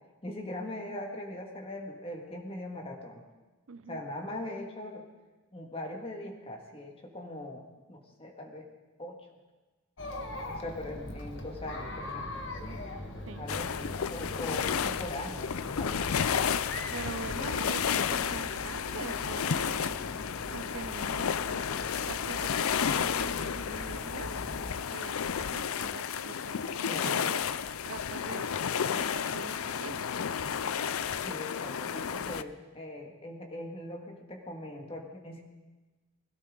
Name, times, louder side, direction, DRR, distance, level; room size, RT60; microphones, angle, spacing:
voice 1, 0.2-3.2 3.9-5.0 5.5-7.6 7.9-8.7 9.0-9.2 10.4-12.4 13.4-16.2 26.8-27.3 31.2-35.4, left 1 dB, 25° left, 1 dB, 2.1 m, -41 dB
voice 2, 3.7-4.0 13.3-13.5 16.9-20.0 20.5-21.6 22.1-24.4 24.7-27.4 27.8-30.1, right 5 dB, 70° right, 14 dB, 0.6 m, -44 dB
Chatter, 10.0-24.7, left 1 dB, 60° left, 1.7 m, -42 dB
sound 1, 11.7-22.5, right 1 dB, 5° left, 3.4 m, -55 dB
sound 2, 13.5-32.4, left 7 dB, 85° left, 0.5 m, -32 dB
21.5 x 16.5 x 3.9 m, 1.2 s
head